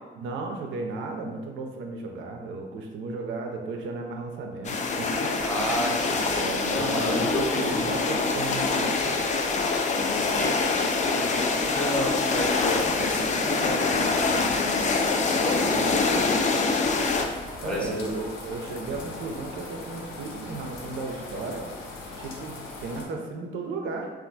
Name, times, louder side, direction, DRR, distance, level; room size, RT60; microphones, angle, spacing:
voice 1, 0.2-5.5 6.3-9.3 15.5-16.3 17.6-21.7 22.2-24.1, right 3 dB, 80° right, 2 dB, 0.5 m, -34 dB
sound 1, 4.6-17.2, left 4 dB, 35° left, 0.4 m, -25 dB
sound 2, 5.4-23.1, left 3 dB, 85° left, 0.5 m, -40 dB
voice 2, 5.4-7.6 9.7-10.5 11.2-16.0 17.6-18.3, equal, 5° left, -4 dB, 0.8 m, -32 dB
2.4 x 2.2 x 3.8 m, 1.3 s
cardioid pair, 90°, 20 cm